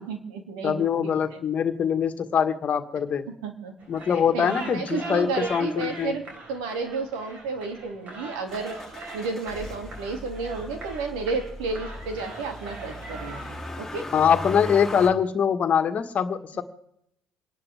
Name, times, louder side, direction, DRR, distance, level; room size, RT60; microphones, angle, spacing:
voice 1, 0.0-1.2 3.4-3.7 4.3-6.2 6.5-8.8 9.1-14.1, right 4 dB, 85° right, 5 dB, 2.7 m, -32 dB
voice 2, 0.6-3.3 3.9-6.1 14.1-16.6, left 7 dB, 45° left, 8 dB, 1.6 m, -23 dB
sound 1, 3.8-13.7, right 2 dB, 50° right, 4.8 m, -41 dB
Motor vehicle (road), 8.5-15.1, left 2 dB, 5° left, 3.1 m, -38 dB
28.5 x 11.5 x 3.6 m, 0.79 s
supercardioid pair, 75°, 3 cm